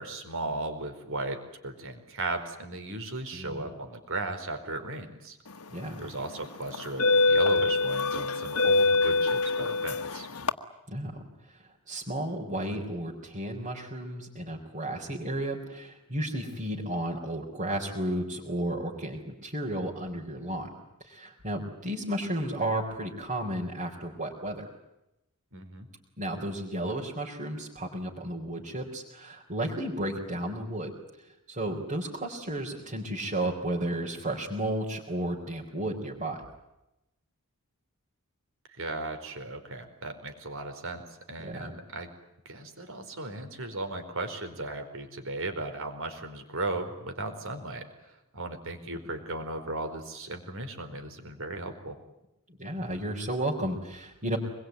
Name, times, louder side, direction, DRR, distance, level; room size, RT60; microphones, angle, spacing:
voice 1, 0.0-5.4 6.0-10.3 25.5-25.9 38.7-42.1 42.4-47.9 48.3-52.0, right 2 dB, 65° right, 6 dB, 4.6 m, -36 dB
voice 2, 3.3-3.7 5.7-6.1 10.9-11.2 11.9-20.7 21.0-24.7 26.2-30.9 31.5-36.4 41.4-41.7 52.6-54.4, right 1 dB, 40° right, -4 dB, 4.4 m, -33 dB
sound 1, 5.7-6.0 6.7-10.5, left 3 dB, 75° left, 1.4 m, -24 dB
26.0 x 22.0 x 9.4 m, 0.90 s
head